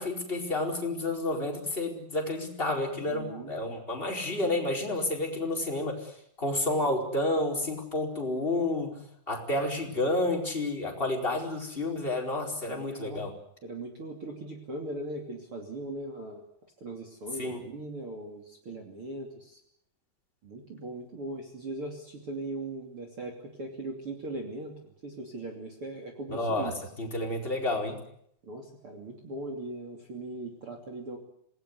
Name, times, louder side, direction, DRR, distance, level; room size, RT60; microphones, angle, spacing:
voice 1, 0.0-9.0 9.3-13.3 17.4-17.6 26.3-28.0, left 2 dB, 15° left, 0 dB, 4.7 m, -30 dB
voice 2, 3.1-3.6 12.6-13.2 13.6-16.4 16.8-19.6 20.4-26.8 28.4-31.2, right 2 dB, 40° right, 2 dB, 3.4 m, -39 dB
27.0 x 19.5 x 8.2 m, 0.71 s
omnidirectional pair, 4.3 m